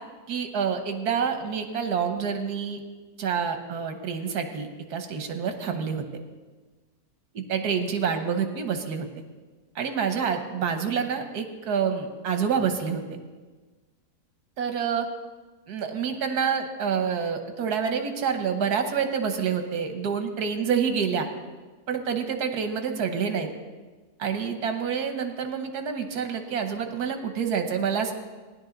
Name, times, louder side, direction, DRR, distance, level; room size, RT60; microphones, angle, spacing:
voice 1, 0.3-2.8 3.2-6.0 7.3-9.1 9.7-13.0 14.6-15.1 15.7-21.3 21.9-23.5 24.2-28.1, right 6 dB, 85° right, 6 dB, 1.6 m, -27 dB
16.0 x 10.5 x 3.9 m, 1.3 s
omnidirectional pair, 1.6 m